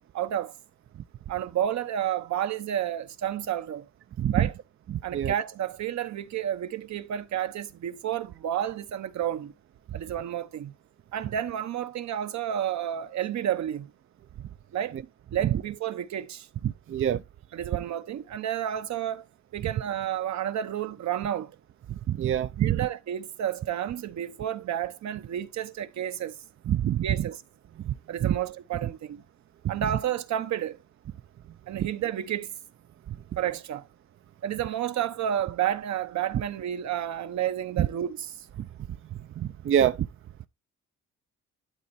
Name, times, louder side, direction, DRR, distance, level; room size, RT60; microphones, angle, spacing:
voice 1, 0.1-0.5 1.3-3.9 4.3-4.5 5.0-9.5 9.9-10.7 11.1-13.9 14.7-14.9 15.3-16.5 17.5-19.2 19.5-21.5 22.6-26.4 27.0-27.4 28.1-29.2 29.7-30.8 31.7-32.5 33.4-33.9 34.4-38.4, right 10 dB, 65° right, 1.0 m, -31 dB
voice 2, 4.9-5.3 16.9-17.2 22.1-22.8 26.7-27.0 27.8-27.9 28.2-28.4 31.8-31.9 39.4-40.1, right 10 dB, 45° right, 0.5 m, -25 dB
12.0 x 4.4 x 4.2 m
cardioid pair, 90°, 30 cm